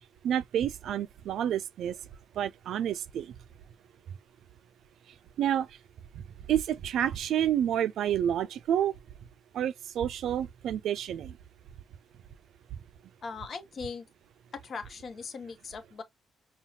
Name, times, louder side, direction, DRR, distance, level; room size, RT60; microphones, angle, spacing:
voice 1, 0.2-2.0 2.3-3.4 5.4-5.8 6.1-6.2 6.5-9.0 9.5-11.4 12.7-12.8, right 10 dB, 75° right, 0.3 m, -29 dB
voice 2, 13.2-14.0 14.5-16.0, left 5 dB, 50° left, 0.9 m, -39 dB
5.5 x 2.3 x 2.7 m
cardioid pair, 90°, 0 cm